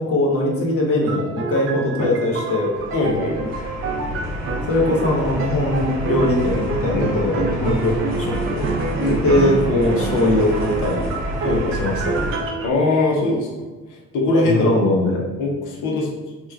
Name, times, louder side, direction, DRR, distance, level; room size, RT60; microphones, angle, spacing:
voice 1, 0.0-2.7 4.7-8.6 9.2-11.0 11.8-12.2 14.4-15.2, left 1 dB, 50° left, -1 dB, 0.9 m, -21 dB
sound 1, 1.0-12.7, right 4 dB, 45° right, 0.4 m, -28 dB
sound 2, 2.7-12.4, equal, 60° right, 1.0 m, -28 dB
voice 2, 2.9-3.5 6.6-6.7 6.9-7.1 7.6-7.8 9.0-9.2 11.4-11.8 12.6-14.8 15.4-16.1, left 2 dB, 80° left, -1 dB, 0.7 m, -22 dB
3.0 x 2.2 x 3.4 m, 1.3 s
cardioid pair, 90°, 30 cm